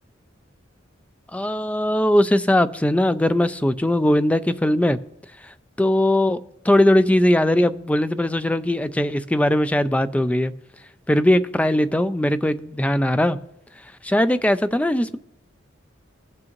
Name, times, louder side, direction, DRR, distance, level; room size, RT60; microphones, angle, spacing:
voice 1, 1.3-5.0 5.8-6.4 6.6-10.5 11.1-13.4 14.0-15.2, left 1 dB, 5° left, 12 dB, 0.3 m, -19 dB
17.5 x 6.2 x 3.0 m, 0.79 s
head